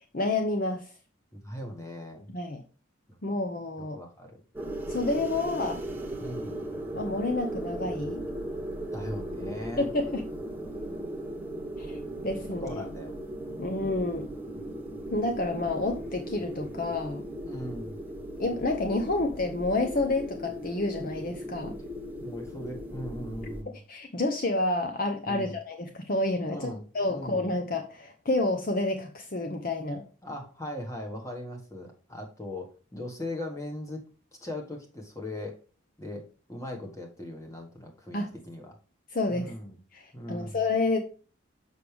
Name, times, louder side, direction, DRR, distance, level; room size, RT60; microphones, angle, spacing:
voice 1, 0.1-0.9 2.3-2.6 3.2-4.0 4.9-5.8 6.9-8.2 9.8-10.2 11.8-12.8 13.6-14.2 15.1-17.2 18.4-21.8 23.9-30.0 38.1-38.3 39.1-39.5 39.9-41.0, left 2 dB, 45° left, 5 dB, 0.7 m, -29 dB
voice 2, 1.3-2.3 3.1-3.2 3.8-4.4 6.2-6.5 8.9-9.9 12.6-13.1 13.4-13.8 17.5-18.0 22.2-23.8 25.3-25.6 26.5-26.8 27.1-27.5 30.2-34.0 34.4-35.6 36.0-36.2 36.5-38.8 39.3-39.8 40.1-40.6, left 1 dB, 15° left, 2 dB, 1.5 m, -39 dB
sound 1, 4.5-23.6, right 1 dB, 10° right, 0.9 m, -37 dB
6.5 x 6.1 x 3.4 m, 0.37 s
head